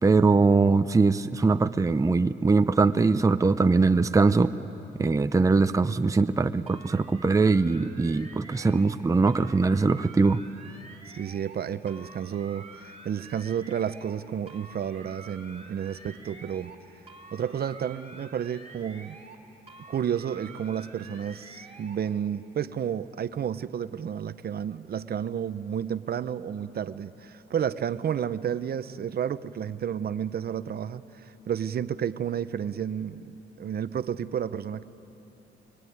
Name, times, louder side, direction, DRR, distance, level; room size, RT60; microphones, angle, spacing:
voice 1, 0.0-4.5 5.0-10.4, right 4 dB, 15° right, 10 dB, 0.7 m, -22 dB
sound 1, 6.7-9.0 9.3-11.6 11.9-14.2 14.5-16.8 17.1-19.4 19.7-22.0, right 3 dB, 30° right, 2.8 m, -48 dB
voice 2, 11.1-16.7 17.3-19.2 19.9-33.3 33.6-34.8, right 8 dB, 50° right, 13 dB, 0.8 m, -31 dB
24.0 x 23.0 x 9.5 m, 3.0 s
cardioid pair, 90°, 20 cm